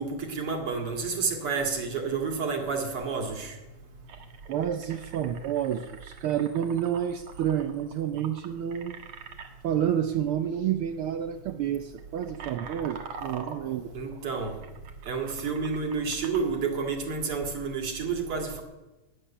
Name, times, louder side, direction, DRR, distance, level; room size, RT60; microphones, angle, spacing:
voice 1, 0.0-3.5 13.9-14.6 15.1-18.6, right 5 dB, 50° right, 3 dB, 2.9 m, -30 dB
sound 1, 3.5-3.6 4.0-9.5 10.5-10.7 11.0-11.3 11.8-16.6, right 6 dB, 65° right, 2.6 m, -44 dB
voice 2, 4.5-9.0 9.6-13.9, right 9 dB, 85° right, 8 dB, 1.2 m, -29 dB
17.5 x 7.6 x 9.9 m, 1.1 s
omnidirectional pair, 3.3 m